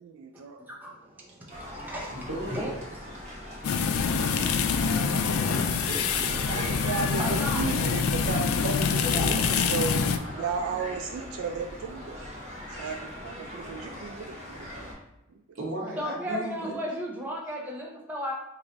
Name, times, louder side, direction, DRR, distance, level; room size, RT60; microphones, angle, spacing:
voice 1, 0.0-0.6 6.2-12.2 12.7-14.9 15.3-15.6, right 5 dB, 90° right, 5 dB, 0.3 m, -35 dB
voice 2, 0.6-5.5 7.2-7.8 9.1-9.3 16.0-18.3, equal, 10° right, -3 dB, 0.6 m, -37 dB
sound 1, 1.5-14.9, left 1 dB, 35° right, 1.3 m, -40 dB
voice 3, 2.1-2.7 5.5-7.0 8.9-9.6 13.4-13.5 15.5-16.8, right 1 dB, 70° right, -3 dB, 1.2 m, -37 dB
sound 2, 3.6-10.2, left 5 dB, 85° left, 0.3 m, -26 dB
3.1 x 2.6 x 3.9 m, 0.93 s
head